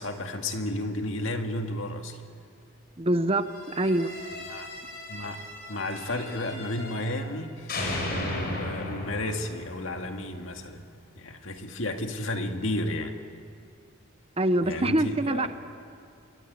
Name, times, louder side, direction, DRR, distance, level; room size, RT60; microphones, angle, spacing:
voice 1, 0.0-2.2 4.5-4.7 5.1-5.4 5.7-7.8 8.0-10.8 11.2-13.2 14.6-15.5, left 1 dB, 60° left, 5 dB, 2.1 m, -32 dB
voice 2, 3.0-4.1 14.4-15.5, right 1 dB, 25° right, 11 dB, 0.8 m, -25 dB
sound 1, 3.5-7.4 7.7-10.7, left 1 dB, 45° left, 5.1 m, -36 dB
25.5 x 24.0 x 9.5 m, 2.3 s
head